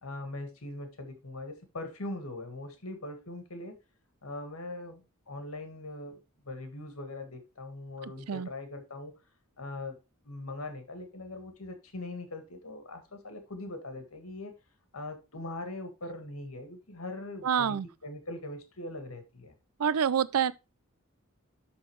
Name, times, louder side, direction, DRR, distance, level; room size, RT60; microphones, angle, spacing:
voice 1, 0.0-3.8 4.2-9.1 9.6-10.0 10.2-14.5 14.9-19.5, left 2 dB, 75° left, 1.8 m, -41 dB
voice 2, 17.4-17.9 19.8-20.5, right 8 dB, 80° right, 0.4 m, -26 dB
12.0 x 4.0 x 3.1 m
head